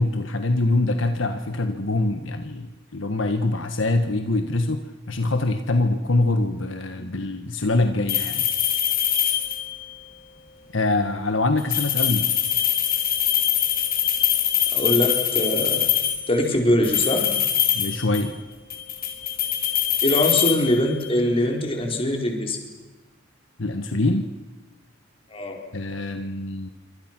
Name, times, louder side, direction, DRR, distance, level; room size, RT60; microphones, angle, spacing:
voice 1, 0.0-8.5 10.7-12.3 17.7-18.4 23.6-24.3 25.7-26.7, left 2 dB, 70° left, 7 dB, 1.4 m, -24 dB
sound 1, 8.1-9.8 11.6-16.3 16.8-18.4 18.7-21.2, left 10 dB, 50° left, 4.5 m, -23 dB
voice 2, 14.7-15.9 16.3-17.3 20.0-22.6 25.3-25.6, left 1 dB, 30° left, 1 dB, 4.6 m, -22 dB
27.5 x 25.5 x 6.1 m, 1.2 s
head